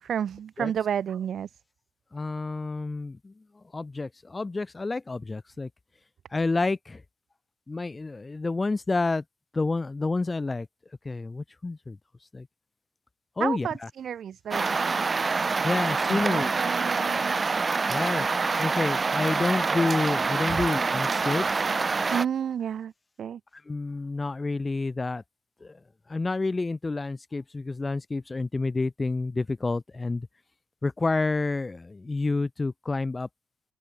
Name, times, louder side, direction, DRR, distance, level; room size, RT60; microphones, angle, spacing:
voice 1, 0.0-1.5 13.4-15.8 16.1-17.6 20.5-20.6 22.1-22.9 23.2-23.4, right 8 dB, 60° right, 0.6 m, -32 dB
voice 2, 2.1-3.3 3.7-5.7 6.3-7.0 7.7-9.2 9.5-10.7 11.1-12.0 12.3-12.4 13.4-13.7 15.6-16.5 17.9-18.2 18.6-21.7 23.7-25.2 26.1-30.3 30.8-33.3, left 3 dB, 20° left, 0.7 m, -29 dB
sound 1, 14.5-22.3, right 4 dB, 30° right, 0.9 m, -26 dB
open air
cardioid pair, 90°, 0 cm